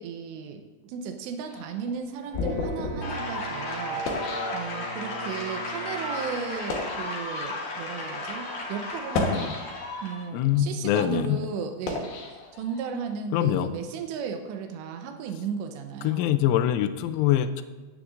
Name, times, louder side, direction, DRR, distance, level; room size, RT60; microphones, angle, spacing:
voice 1, 0.0-4.0 4.5-9.5 10.0-12.1 12.5-16.4, right 6 dB, 80° right, 5 dB, 2.7 m, -35 dB
sound 1, 1.5-5.2 5.9-6.0 6.5-7.1 7.9-8.0 8.9-10.0 10.6-13.1, left 3 dB, 65° left, 2.5 m, -33 dB
Wind instrument woodwind instrument, 2.3-6.5, right 4 dB, 50° right, 2.6 m, -41 dB
sound 2, 3.0-10.2, left 2 dB, 50° left, 2.4 m, -34 dB
voice 2, 9.2-9.6 10.3-11.4 13.3-13.7 16.0-17.6, left 11 dB, 85° left, 11 dB, 3.0 m, -24 dB
16.5 x 10.0 x 2.6 m, 1.3 s
omnidirectional pair, 5.9 m